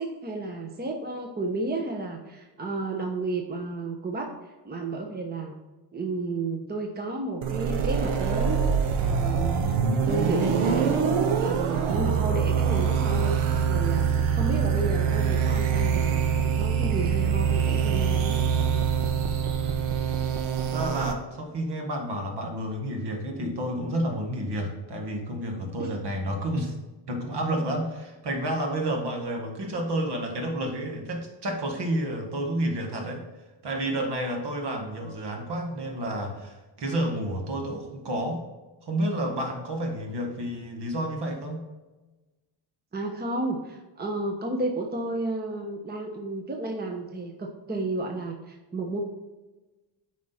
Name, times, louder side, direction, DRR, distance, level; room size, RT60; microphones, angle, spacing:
voice 1, 0.0-4.4 4.6-5.5 5.9-8.6 9.0-9.8 10.1-11.0 11.4-16.3 16.5-18.4 25.8-26.0 42.9-49.0, right 2 dB, 20° right, 3 dB, 1.0 m, -32 dB
sound 1, 7.4-21.1, right 6 dB, 80° right, 1.1 m, -24 dB
voice 2, 20.6-26.8 27.1-33.2 33.6-38.4 38.8-41.6, right 1 dB, 55° right, 2 dB, 2.0 m, -30 dB
8.5 x 5.0 x 4.2 m, 1.2 s
cardioid pair, 85°, 49 cm